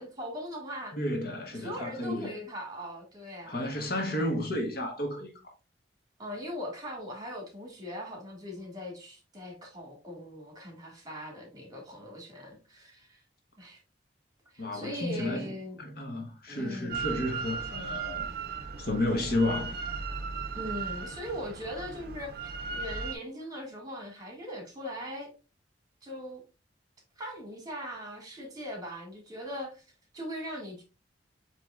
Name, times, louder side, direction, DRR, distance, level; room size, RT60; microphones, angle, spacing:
voice 1, 0.0-0.9 1.5-3.6 6.2-13.2 13.6-13.8 14.5-15.8 16.5-17.0 20.5-25.3 26.0-26.4 27.2-29.8 30.1-30.8, equal, 20° right, 1.7 m, -40 dB
voice 2, 0.9-2.4 3.5-5.5 14.6-15.5 15.8-18.3 18.8-19.8, left 1 dB, 55° left, 1.1 m, -32 dB
Drill, 16.9-23.1, right 5 dB, 55° right, 0.5 m, -37 dB
7.3 x 3.0 x 2.3 m
head